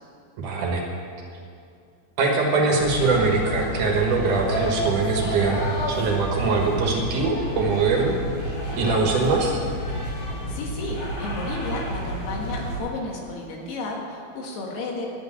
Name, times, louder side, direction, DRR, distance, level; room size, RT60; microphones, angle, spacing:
voice 1, 0.4-0.8 2.2-5.6 5.9-9.6, right 3 dB, 60° right, 0 dB, 2.6 m, -22 dB
sound 1, 2.8-12.8, equal, 50° left, 3.9 m, -30 dB
voice 2, 10.5-15.1, left 2 dB, 85° left, 0 dB, 3.8 m, -32 dB
11.5 x 8.2 x 9.7 m, 2.4 s
omnidirectional pair, 4.5 m